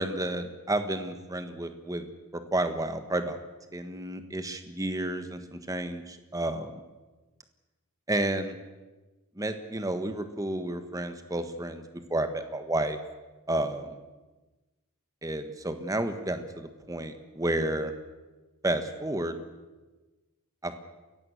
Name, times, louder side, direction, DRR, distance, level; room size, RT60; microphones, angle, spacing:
voice 1, 0.0-2.1 2.3-3.4 3.7-6.8 8.1-8.6 9.3-11.8 12.1-13.0 13.5-14.0 15.2-17.9 18.6-19.4 20.6-20.8, right 1 dB, 15° right, 8 dB, 1.4 m, -31 dB
28.5 x 16.0 x 6.6 m, 1.2 s
head